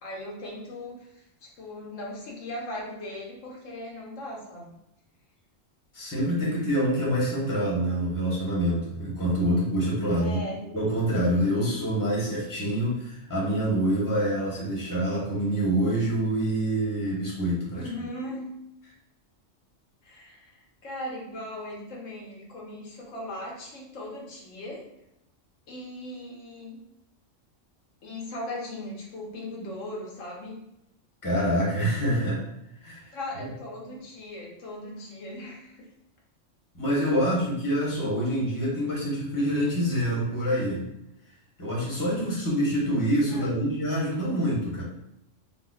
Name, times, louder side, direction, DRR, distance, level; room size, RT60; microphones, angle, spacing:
voice 1, 0.0-4.8 10.2-10.8 17.7-18.5 20.0-24.9 25.7-26.8 28.0-30.6 33.1-35.9 37.1-37.3 43.3-43.5, left 1 dB, 85° left, -3 dB, 1.2 m, -38 dB
voice 2, 5.9-10.4 10.7-17.9 31.2-32.4 32.8-33.4 36.8-40.8 41.6-44.8, equal, 15° left, -5 dB, 0.9 m, -26 dB
4.1 x 2.4 x 2.3 m, 0.82 s
omnidirectional pair, 1.3 m